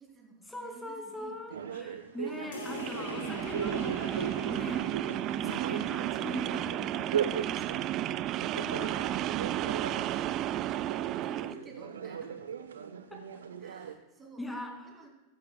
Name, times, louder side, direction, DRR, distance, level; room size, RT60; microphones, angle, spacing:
voice 1, 0.0-1.8 2.3-2.7 8.4-12.4 13.6-14.5 14.8-15.1, right 3 dB, 20° right, 0 dB, 2.8 m, -54 dB
voice 2, 0.5-4.9 5.4-9.0 13.1-13.2 14.4-14.7, left 1 dB, 5° left, 2 dB, 2.2 m, -42 dB
sound 1, 1.5-13.9, right 8 dB, 65° right, 0.8 m, -38 dB
sound 2, 2.5-7.6, left 3 dB, 60° left, 3.9 m, -45 dB
sound 3, 2.7-11.6, right 13 dB, 35° right, 0.3 m, -33 dB
15.0 x 14.0 x 2.2 m, 1.1 s
figure-of-eight pair, 90°, 0 cm